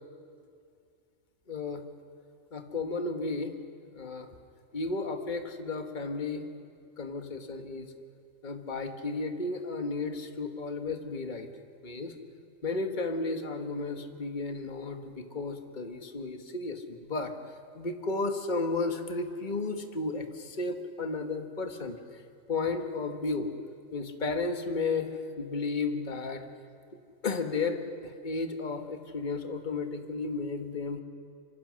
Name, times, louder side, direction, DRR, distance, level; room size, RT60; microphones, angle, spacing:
voice 1, 1.5-1.8 2.5-3.5 3.9-4.3 4.7-6.4 7.0-7.9 8.4-11.5 11.8-12.1 12.6-17.3 17.7-22.0 22.5-23.5 23.9-26.4 27.2-31.0, left 3 dB, 35° left, 6 dB, 1.5 m, -33 dB
26.5 x 25.0 x 6.4 m, 2.3 s
omnidirectional pair, 1.4 m